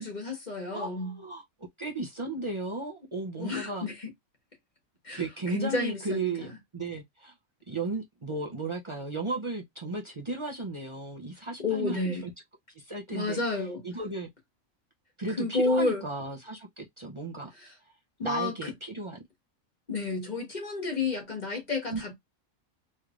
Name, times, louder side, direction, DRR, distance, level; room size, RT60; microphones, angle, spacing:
voice 1, 0.0-1.2 3.4-4.1 5.0-5.2 5.5-6.3 11.6-12.2 13.1-13.8 15.4-16.0 17.6-17.7 18.2-18.7 19.9-22.1, left 3 dB, 35° left, 1.4 m, -30 dB
voice 2, 0.7-1.4 1.8-3.9 5.1-6.5 6.7-7.3 7.7-12.3 12.7-14.3 15.2-17.5 18.2-19.2 21.9-22.0, right 3 dB, 40° right, 0.4 m, -35 dB
3.2 x 3.2 x 2.4 m
omnidirectional pair, 1.4 m